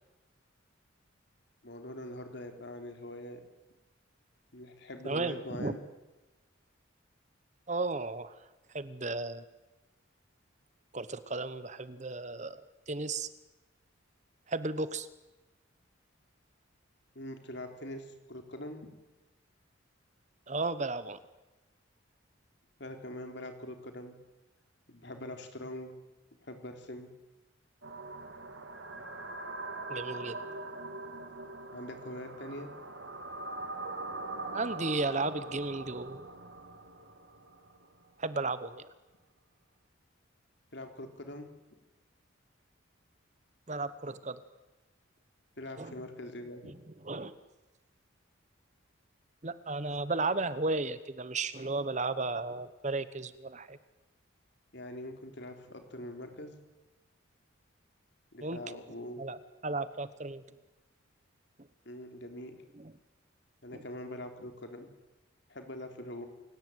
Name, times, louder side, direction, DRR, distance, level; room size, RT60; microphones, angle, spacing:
voice 1, 1.6-3.4 4.5-5.8 17.2-18.9 22.8-24.2 24.9-25.9 26.4-27.1 31.7-32.7 40.7-41.5 45.6-46.7 54.7-56.6 58.3-59.2 61.9-62.6 63.6-64.9 65.5-66.3, left 1 dB, 55° left, 5 dB, 3.7 m, -43 dB
voice 2, 5.0-5.7 7.7-8.4 8.7-9.4 10.9-13.3 14.5-15.1 20.5-21.2 29.9-30.4 34.5-36.3 38.2-38.9 43.7-44.4 45.8-45.9 46.6-46.7 47.0-47.3 49.4-53.8 58.4-58.6 59.2-60.4 62.8-62.9 63.7-63.8, right 3 dB, 35° right, 14 dB, 1.1 m, -34 dB
sound 1, 27.8-37.9, right 2 dB, 65° right, 2.8 m, -42 dB
28.5 x 17.5 x 9.3 m, 1.1 s
head